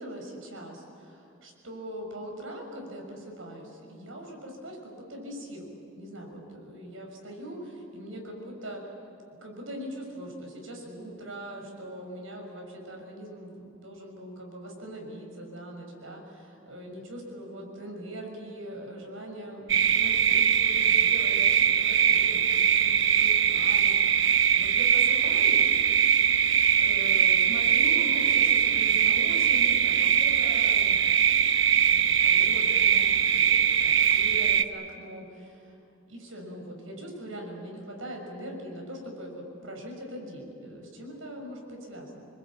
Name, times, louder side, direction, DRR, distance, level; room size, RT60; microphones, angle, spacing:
voice 1, 0.0-8.9 9.3-24.2 24.5-25.7 26.8-31.0 31.9-35.8 36.1-42.3, equal, 85° right, 1 dB, 6.3 m, -41 dB
sound 1, 19.7-34.6, right 8 dB, 65° right, 0.9 m, -22 dB
27.0 x 21.5 x 8.8 m, 2.5 s
head